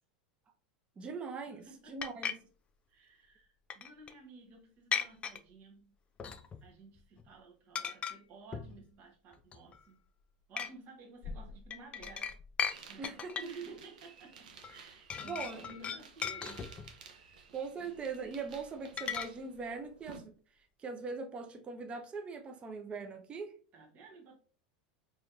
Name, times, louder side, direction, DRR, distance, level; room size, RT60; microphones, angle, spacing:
voice 1, 1.0-2.4 13.0-13.6 15.2-15.6 17.5-23.5, right 4 dB, 25° right, 5 dB, 0.7 m, -41 dB
voice 2, 1.5-2.0 2.9-5.9 6.2-10.0 10.5-12.4 12.9-16.7 17.0-17.4 17.7-17.9 23.7-24.4, right 3 dB, 45° right, 0 dB, 1.3 m, -53 dB
sound 1, 2.0-2.3 3.7-4.1 4.9-5.4 6.2-6.7 7.0-7.3 7.7-8.2 8.5-8.8 9.3-9.8 10.6-10.7 11.2-12.8 13.0-13.6 14.6-14.8 15.1-17.0 19.0-19.3, left 7 dB, 30° left, 0.5 m, -37 dB
sound 2, 12.7-20.2, right 6 dB, 85° right, 0.8 m, -55 dB
4.3 x 3.1 x 2.6 m, 0.41 s
hypercardioid pair, 105°, 4 cm